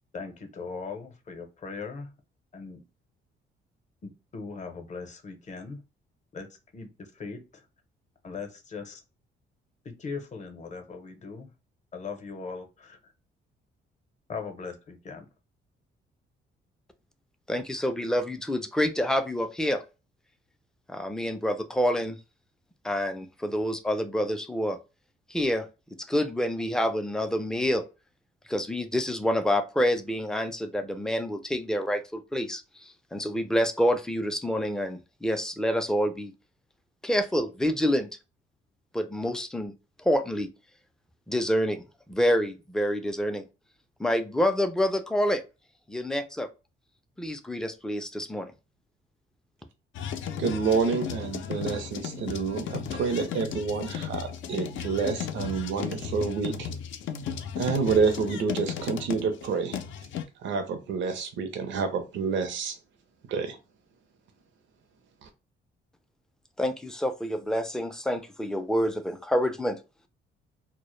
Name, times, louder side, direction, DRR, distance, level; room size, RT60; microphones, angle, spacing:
voice 1, 0.1-2.1 2.5-2.8 4.0-5.8 6.3-7.7 8.2-9.0 9.8-11.5 11.9-13.1 14.3-15.3, left 4 dB, 35° left, 4 dB, 0.6 m, -39 dB
voice 2, 17.5-19.8 20.9-22.2 22.8-24.8 25.3-25.7 26.1-27.8 28.5-36.3 37.0-38.1 38.9-39.7 40.0-40.5 41.3-41.8 42.1-43.4 44.0-45.4 45.9-46.5 47.2-48.5 66.6-69.8, equal, 5° left, 8 dB, 0.3 m, -27 dB
sound 1, 49.9-60.2, left 8 dB, 75° left, 0.4 m, -35 dB
voice 3, 50.4-56.7 57.6-59.8 60.4-62.8 63.3-63.6 65.2-65.3, right 5 dB, 70° right, 6 dB, 0.5 m, -28 dB
2.0 x 2.0 x 3.0 m, 0.30 s
cardioid pair, 90°, 20 cm